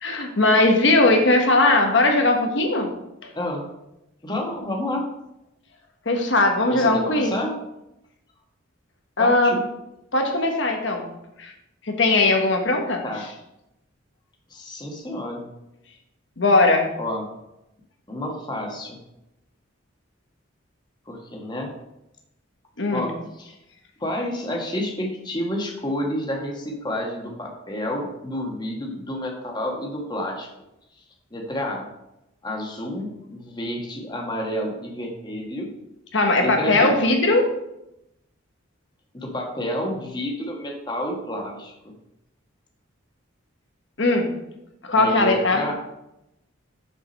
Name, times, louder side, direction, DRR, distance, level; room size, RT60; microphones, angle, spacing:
voice 1, 0.0-2.9 6.0-7.3 9.2-9.5 10.1-11.1 11.4-11.5 11.9-13.0 16.4-16.9 22.8-23.1 36.1-37.5 44.0-44.3 44.9-45.6, left 2 dB, 60° left, 3 dB, 1.3 m, -19 dB
voice 2, 3.3-3.6 4.2-5.1 6.7-7.5 9.2-9.6 13.0-13.2 14.5-15.5 17.0-17.3 18.1-19.0 21.1-21.7 22.9-23.5 24.0-30.5 31.3-31.9 32.4-35.7 36.4-36.9 39.1-41.7 45.0-45.7, left 1 dB, 20° left, 0 dB, 1.3 m, -29 dB
6.7 x 5.0 x 5.3 m, 0.88 s
head